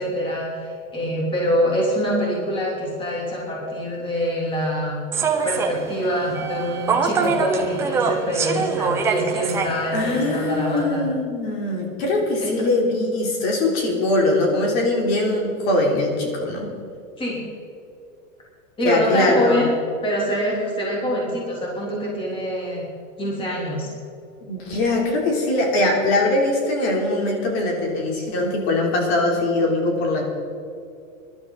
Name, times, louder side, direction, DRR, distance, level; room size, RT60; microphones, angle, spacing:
voice 1, 0.0-5.0 5.4-11.0 12.4-12.5 17.2-17.4 18.8-19.7 20.0-22.8 23.2-23.9, equal, 15° left, -4 dB, 3.3 m, -25 dB
Human voice / Subway metro underground, 5.1-10.8, right 5 dB, 5° right, 0.4 m, -25 dB
voice 2, 9.9-16.7 18.8-19.7 24.5-30.2, left 2 dB, 50° left, 0 dB, 3.5 m, -21 dB
21.0 x 12.0 x 4.1 m, 2.5 s
supercardioid pair, 165°, 40 cm